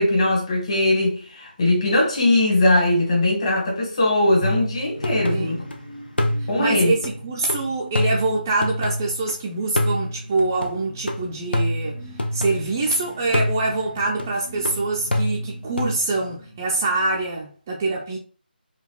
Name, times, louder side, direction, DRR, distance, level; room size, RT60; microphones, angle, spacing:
voice 1, 0.0-5.6 6.5-6.9, left 1 dB, 35° left, 1.2 m, -20 dB
sound 1, 4.4-5.8 6.2-9.3 9.8-12.9 13.3-16.0, left 1 dB, 85° left, 0.7 m, -27 dB
sound 2, 4.9-8.5 9.1-17.3, equal, 60° left, 1.6 m, -43 dB
voice 2, 5.3-5.6 6.4-12.0 12.3-18.2, right 3 dB, 15° right, 0.3 m, -25 dB
4.7 x 2.2 x 2.3 m
figure-of-eight pair, 155°, 6 cm